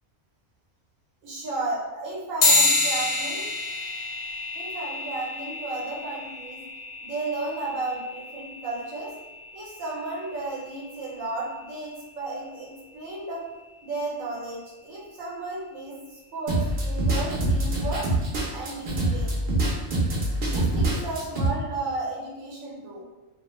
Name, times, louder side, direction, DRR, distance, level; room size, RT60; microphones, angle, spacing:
voice 1, 1.2-3.5 4.5-6.6 7.0-9.1 9.5-13.4 13.8-18.1 18.5-19.4 20.4-23.0, right 2 dB, 90° right, -4 dB, 1.1 m, -33 dB
sound 1, 2.4-12.2, left 3 dB, 65° left, 0.7 m, -29 dB
sound 2, 16.5-21.5, right 1 dB, 60° right, 0.7 m, -25 dB
2.4 x 2.1 x 2.9 m, 1.1 s
omnidirectional pair, 1.4 m